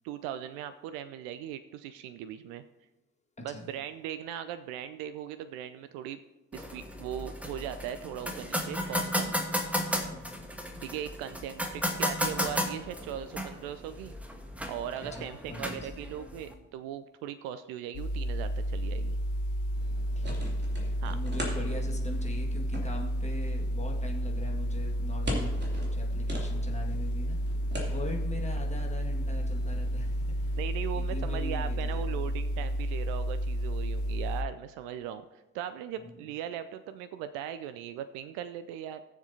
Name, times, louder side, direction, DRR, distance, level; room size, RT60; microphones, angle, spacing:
voice 1, 0.0-2.6 3.4-6.2 6.5-9.3 10.8-14.1 14.7-19.2 21.0-21.2 30.5-39.0, right 10 dB, 65° right, 11 dB, 0.5 m, -39 dB
sound 1, 6.5-16.5, equal, 5° right, 1.3 m, -34 dB
voice 2, 15.1-15.9 20.2-25.5 25.8-27.4 27.8-30.6 30.9-32.3 32.6-32.7 36.0-36.1, left 2 dB, 15° left, 0 dB, 1.9 m, -42 dB
sound 2, 17.9-34.4, equal, 50° left, 0.9 m, -31 dB
sound 3, 19.7-30.6, left 1 dB, 25° right, 2.8 m, -42 dB
19.0 x 7.2 x 2.8 m, 1.0 s
figure-of-eight pair, 40°, 39 cm